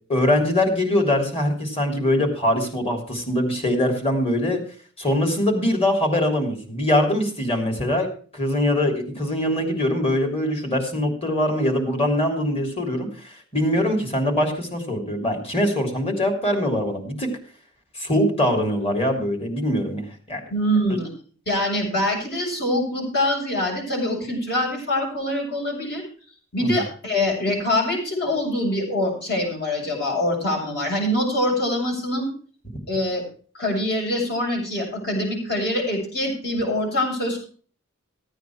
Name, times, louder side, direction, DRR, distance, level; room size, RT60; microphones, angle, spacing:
voice 1, 0.1-4.6 5.0-8.1 8.3-17.3 17.9-20.4 20.9-21.0 26.6-26.7, left 1 dB, 30° left, 3 dB, 3.3 m, -22 dB
voice 2, 20.5-21.1 21.5-26.0 26.5-32.3 32.9-33.2 33.5-37.4, left 1 dB, 55° left, -1 dB, 7.5 m, -24 dB
15.5 x 9.2 x 4.7 m, 0.42 s
head